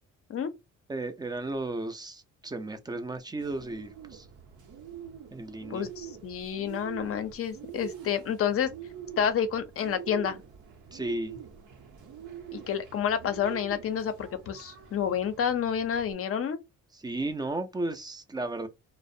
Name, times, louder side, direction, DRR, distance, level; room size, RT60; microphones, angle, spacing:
voice 1, 0.9-4.3 5.3-5.9 10.9-11.4 16.9-18.7, right 2 dB, 15° right, 0.4 m, -34 dB
Bird, 3.4-16.1, right 9 dB, 75° right, 0.8 m, -45 dB
voice 2, 5.7-8.7 9.2-10.4 12.5-16.6, left 8 dB, 50° left, 0.5 m, -29 dB
2.3 x 2.0 x 2.6 m
cardioid pair, 90°, 30 cm